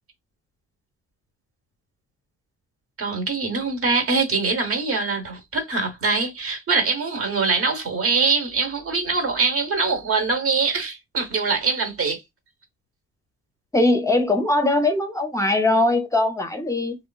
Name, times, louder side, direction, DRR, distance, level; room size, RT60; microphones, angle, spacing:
voice 1, 3.0-12.2, right 4 dB, 50° right, 1.0 m, -23 dB
voice 2, 13.7-17.0, left 2 dB, 10° left, 0.5 m, -21 dB
2.7 x 2.5 x 2.3 m
cardioid pair, 90°, 30 cm